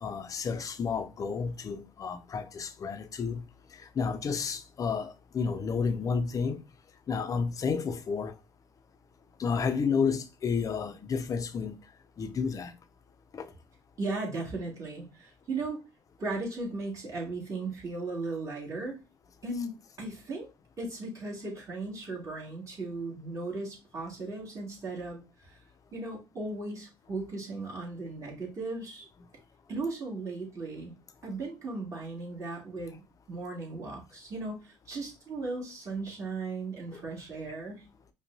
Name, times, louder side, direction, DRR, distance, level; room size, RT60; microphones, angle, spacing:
voice 1, 0.0-3.5 3.7-6.6 7.1-8.4 9.4-11.8 12.2-12.7 13.3-13.5 36.9-37.0, left 5 dB, 35° left, 0.5 m, -31 dB
voice 2, 14.0-15.8 16.2-19.0 19.4-20.5 20.8-25.5 25.9-29.0 29.7-30.9 31.2-33.0 33.3-37.9, right 3 dB, 35° right, 1.9 m, -37 dB
5.2 x 2.3 x 2.6 m
supercardioid pair, 80°, 10 cm